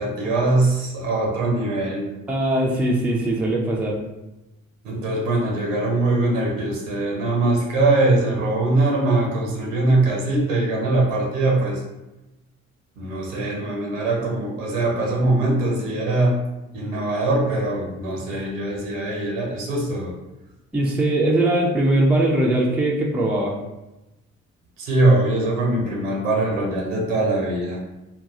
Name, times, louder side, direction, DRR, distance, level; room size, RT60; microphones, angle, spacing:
voice 1, 0.0-2.1 4.8-11.8 13.0-16.4 16.7-20.1 24.8-27.8, right 2 dB, 70° right, -1 dB, 0.8 m, -22 dB
voice 2, 2.3-4.0 20.7-23.6, right 1 dB, 5° right, -2 dB, 0.4 m, -20 dB
3.8 x 2.2 x 2.8 m, 0.97 s
figure-of-eight pair, 45°, 39 cm